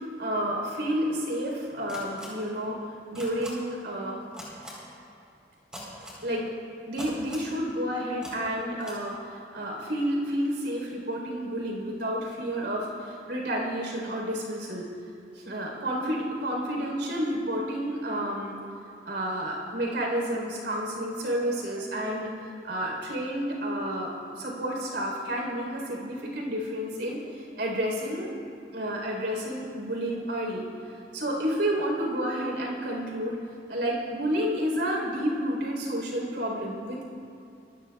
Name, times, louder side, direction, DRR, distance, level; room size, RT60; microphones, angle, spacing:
voice 1, 0.0-4.2 6.2-6.4 6.9-14.9 15.3-18.6 19.1-22.4 22.6-28.3 28.7-30.7 31.1-33.4 33.7-37.0, equal, 80° right, -1 dB, 4.1 m, -30 dB
sound 1, 1.9-2.3 3.1-3.5 4.3-4.7 5.7-6.2 7.0-7.5 8.2-8.3 8.8-8.9, equal, 5° right, 4.1 m, -41 dB
26.0 x 16.0 x 2.4 m, 2.5 s
head